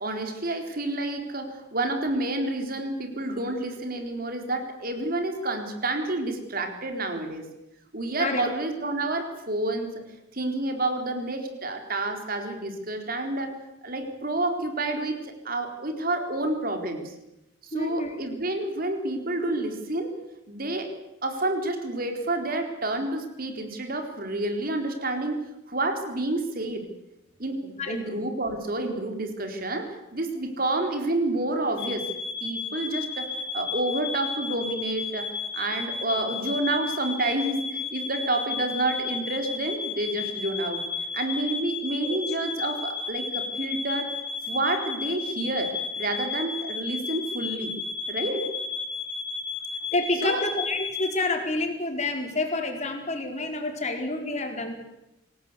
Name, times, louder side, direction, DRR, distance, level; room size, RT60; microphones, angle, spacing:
voice 1, 0.0-7.4 7.9-10.1 10.3-13.5 13.8-17.1 17.6-20.1 20.5-20.9 21.2-25.4 25.7-26.9 27.4-32.1 32.4-40.9 41.1-44.1 44.5-47.7 48.1-48.5 50.2-50.4, right 2 dB, 50° right, 5 dB, 4.1 m, -29 dB
voice 2, 17.7-18.1 27.8-28.0 42.0-42.2 49.9-54.7, left 2 dB, 35° left, 3 dB, 4.3 m, -28 dB
sound 1, 31.8-51.1, left 5 dB, 75° left, 3.9 m, -33 dB
26.0 x 18.5 x 8.4 m, 0.89 s
head